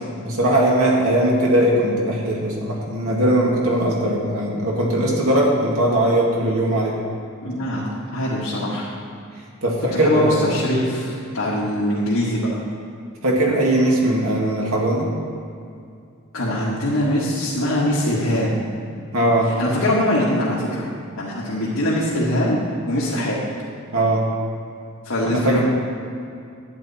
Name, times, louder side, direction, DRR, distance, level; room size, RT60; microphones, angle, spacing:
voice 1, 0.2-7.0 9.6-10.5 13.2-15.1 19.1-19.5 23.9-24.3 25.2-25.6, right 1 dB, 85° right, -2 dB, 2.0 m, -19 dB
voice 2, 7.4-8.9 9.9-12.4 16.3-18.7 19.6-20.9 21.2-22.6 22.9-23.4 25.0-25.6, left 1 dB, 75° left, -9 dB, 1.9 m, -22 dB
11.0 x 9.2 x 4.3 m, 2.4 s
head